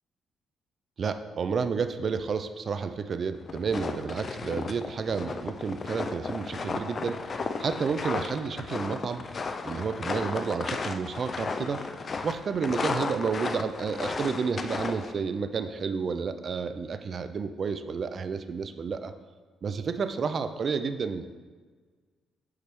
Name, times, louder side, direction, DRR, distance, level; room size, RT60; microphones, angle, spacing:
voice 1, 1.0-9.2 9.7-11.8 12.2-19.1 19.6-21.3, right 5 dB, 50° right, 10 dB, 0.4 m, -31 dB
sound 1, 3.3-15.1, left 4 dB, 40° left, 0.4 m, -34 dB
8.2 x 4.4 x 3.3 m, 1.5 s
cardioid pair, 90°, 0 cm